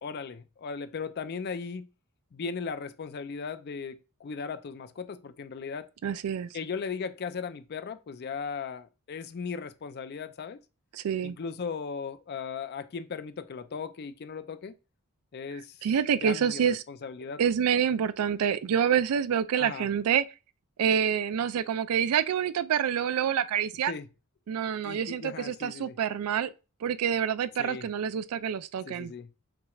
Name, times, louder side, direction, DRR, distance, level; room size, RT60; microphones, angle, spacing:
voice 1, 0.0-1.9 2.3-5.9 6.5-10.6 11.2-14.7 15.3-15.9 16.2-17.4 19.6-19.9 23.9-24.1 24.8-26.0 27.6-27.9 28.9-29.3, left 5 dB, 45° left, 0.4 m, -37 dB
voice 2, 6.0-6.5 10.9-11.4 15.8-16.8 17.4-20.2 20.8-23.9 24.5-26.5 26.8-29.1, right 8 dB, 80° right, 0.3 m, -27 dB
5.9 x 3.1 x 2.3 m
head